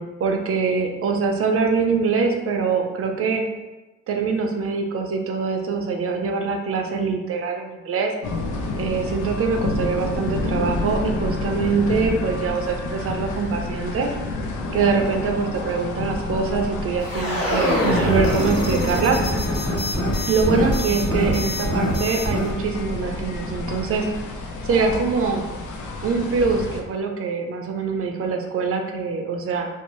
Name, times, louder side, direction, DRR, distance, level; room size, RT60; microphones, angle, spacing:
voice 1, 0.0-3.4 4.1-8.1 8.8-14.1 14.7-19.2 20.3-24.1 24.7-25.5 26.0-29.7, right 5 dB, 50° right, 3 dB, 0.5 m, -23 dB
sound 1, 8.2-26.8, left 2 dB, 80° left, 0.5 m, -29 dB
sound 2, 17.0-22.5, left 1 dB, 55° left, 1.1 m, -24 dB
2.6 x 2.0 x 3.0 m, 1.1 s
cardioid pair, 90°, 30 cm